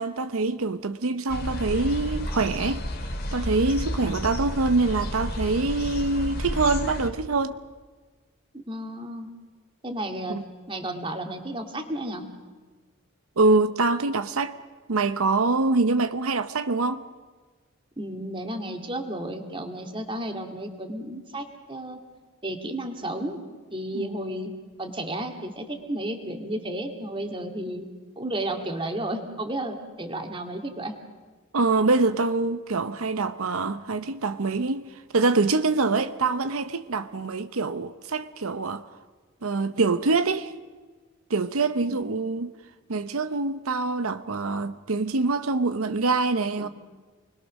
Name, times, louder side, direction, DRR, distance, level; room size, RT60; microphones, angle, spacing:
voice 1, 0.0-2.8 3.3-7.6 10.3-10.4 13.4-14.6 14.9-17.0 23.9-24.2 31.5-34.9 35.1-38.8 39.4-40.5 41.3-42.5 42.9-46.7, right 3 dB, 85° right, 0.8 m, -25 dB
sound 1, 1.3-7.1, left 1 dB, 45° left, 2.4 m, -31 dB
voice 2, 8.5-9.3 9.8-10.4 10.7-12.2 18.0-22.0 22.4-23.4 23.7-24.5 24.8-27.9 28.2-30.9 42.0-42.1 46.6-46.7, right 1 dB, 25° right, 2.2 m, -32 dB
29.0 x 21.0 x 6.4 m
head